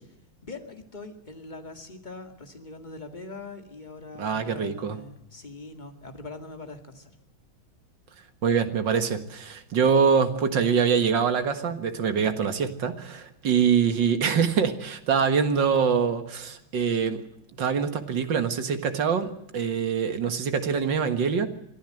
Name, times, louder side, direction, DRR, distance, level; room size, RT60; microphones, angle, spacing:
voice 1, 0.4-7.1 13.5-13.7, left 3 dB, 20° left, 6 dB, 2.2 m, -42 dB
voice 2, 4.2-5.0 8.4-17.2 17.6-21.5, right 6 dB, 60° right, 9 dB, 2.3 m, -24 dB
24.0 x 14.5 x 7.8 m, 0.80 s
omnidirectional pair, 2.3 m